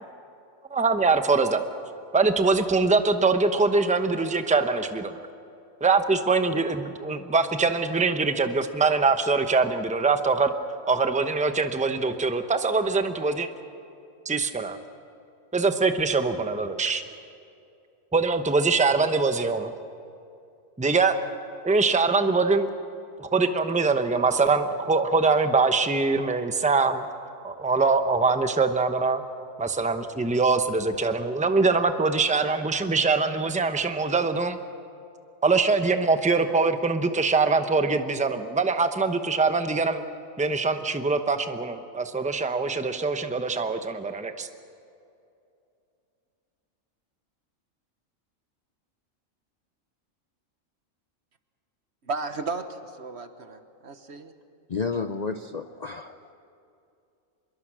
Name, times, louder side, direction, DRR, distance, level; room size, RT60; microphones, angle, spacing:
voice 1, 0.7-1.6 2.1-5.1 5.8-10.5 10.9-13.5 14.2-14.8 15.5-17.0 18.1-19.7 20.8-21.2 21.6-22.7 23.2-27.0 27.4-29.2 29.6-34.6 35.4-40.0 40.4-44.5, right 4 dB, 5° right, 8 dB, 0.8 m, -23 dB
voice 2, 52.1-54.3, right 3 dB, 55° right, 9 dB, 1.4 m, -34 dB
voice 3, 54.7-56.1, left 4 dB, 45° left, 8 dB, 0.6 m, -31 dB
25.5 x 22.0 x 6.3 m, 2.6 s
omnidirectional pair, 1.4 m